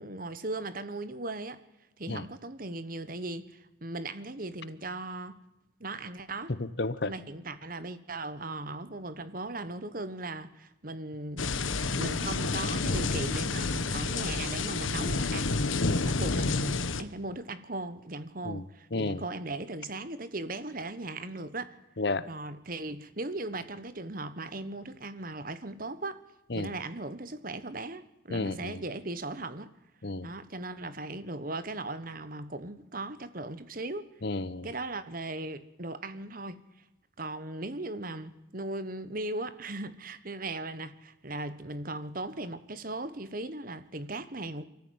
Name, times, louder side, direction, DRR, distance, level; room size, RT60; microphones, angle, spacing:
voice 1, 0.0-1.6 2.0-5.4 5.8-6.6 7.0-11.5 12.0-21.7 22.3-26.2 26.5-29.7 30.2-34.1 34.6-36.6 37.2-44.6, right 2 dB, 45° right, 13 dB, 1.4 m, -38 dB
voice 2, 6.5-7.1 15.8-16.1 18.4-18.6 18.9-19.2 22.0-22.3 26.5-26.7 28.3-28.8 30.0-30.3 34.2-34.7, left 2 dB, 55° left, 16 dB, 0.9 m, -32 dB
sound 1, 11.4-17.0, left 3 dB, 90° left, 1.2 m, -29 dB
23.5 x 14.5 x 9.5 m, 0.91 s
head